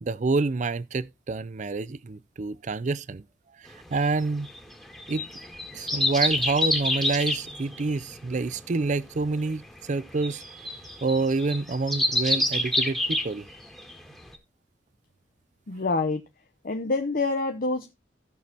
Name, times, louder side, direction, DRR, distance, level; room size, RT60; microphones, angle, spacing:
voice 1, 0.0-3.2 3.6-4.5 5.1-5.3 5.7-13.5, right 3 dB, 45° right, 0.5 m, -28 dB
sound 1, 3.9-13.9 14.3-14.4, left 1 dB, ahead, 1.9 m, -28 dB
voice 2, 15.7-16.2 16.6-17.9, left 3 dB, 55° left, 0.7 m, -26 dB
16.5 x 6.3 x 2.8 m
head